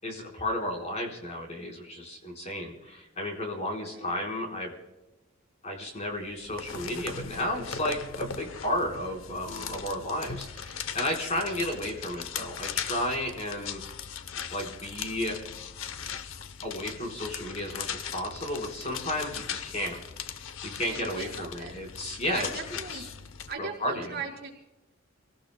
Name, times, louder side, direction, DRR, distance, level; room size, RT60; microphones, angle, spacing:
voice 1, 0.0-4.7 5.6-13.8 14.5-15.4 16.6-20.0 20.6-22.5 22.9-23.1 23.6-24.2, left 1 dB, 35° left, 1 dB, 4.1 m, -33 dB
sound 1, 6.3-23.5, left 7 dB, 75° left, 0.7 m, -39 dB
voice 2, 20.9-21.7 22.3-23.1 23.5-24.5, right 4 dB, 50° right, -1 dB, 4.2 m, -39 dB
28.5 x 18.0 x 2.2 m, 1.0 s
head